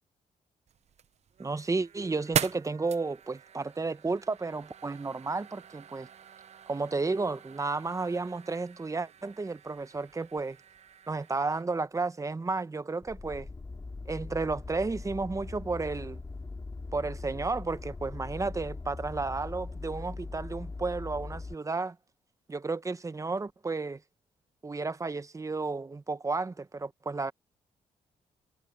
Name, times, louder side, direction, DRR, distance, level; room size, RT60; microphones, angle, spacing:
sound 1, 0.7-11.6, right 8 dB, 55° right, 0.8 m, -41 dB
voice 1, 1.4-6.1 6.7-10.6 11.1-13.5 14.1-16.2 16.9-22.0 22.5-24.0 24.6-27.3, right 3 dB, 25° right, 1.0 m, -32 dB
sound 2, 13.0-21.5, left 3 dB, 25° left, 3.3 m, -41 dB
cardioid pair, 75°, 14 cm